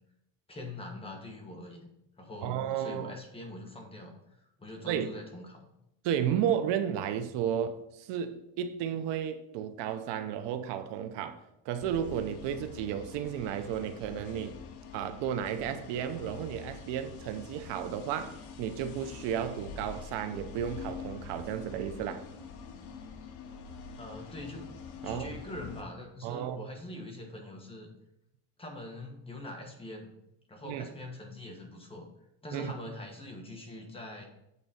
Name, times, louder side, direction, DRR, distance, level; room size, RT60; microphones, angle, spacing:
voice 1, 0.5-1.9 2.2-5.7 24.0-24.7 25.0-27.9 28.6-30.1 30.5-32.1 32.4-34.2, left 1 dB, 15° left, 1.3 m, -43 dB
voice 2, 2.4-3.2 4.9-5.1 6.0-11.4 11.6-14.6 14.9-22.2 25.0-25.3 26.2-26.7 30.6-30.8 32.5-32.7, right 9 dB, 80° right, 0.9 m, -33 dB
sound 1, 11.8-25.8, left 6 dB, 70° left, 1.0 m, -45 dB
8.4 x 4.0 x 5.6 m
cardioid pair, 150°, 42 cm